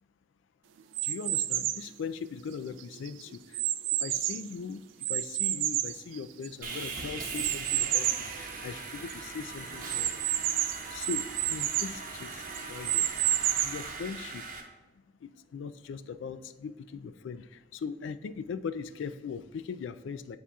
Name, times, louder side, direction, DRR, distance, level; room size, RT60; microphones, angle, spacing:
sound 1, 0.9-1.9 2.5-4.5 5.0-6.7 7.3-8.3 8.8-8.9 9.1-9.2 9.9-12.0 12.5-13.9, right 13 dB, 90° right, 0.3 m, -30 dB
voice 1, 1.0-3.2 4.0-10.2 10.9-13.1 13.6-14.4 15.2-20.4, left 6 dB, 85° left, 12 dB, 0.3 m, -40 dB
Sawing, 6.6-14.6, right 4 dB, 50° right, 0.8 m, -40 dB
9.7 x 4.3 x 2.3 m, 1.2 s
head